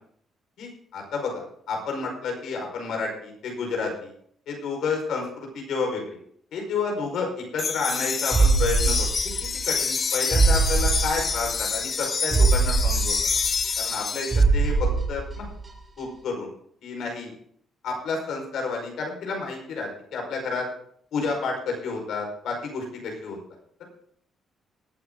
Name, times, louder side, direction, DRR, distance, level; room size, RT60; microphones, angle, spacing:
voice 1, 0.6-4.1 4.5-6.2 6.5-13.2 13.8-15.4 16.0-16.5 16.8-17.3 17.8-20.7 21.1-23.4, left 4 dB, 75° left, 1 dB, 5.1 m, -30 dB
sound 1, 7.6-14.4, left 5 dB, 45° left, 1.0 m, -27 dB
sound 2, 8.3-9.7 10.0-10.1 10.3-11.7 12.0-12.1 12.3-14.0 14.3-15.7 16.0-16.1, right 4 dB, 30° right, 2.7 m, -22 dB
18.5 x 8.9 x 3.9 m, 0.64 s
cardioid pair, 90°, 0 cm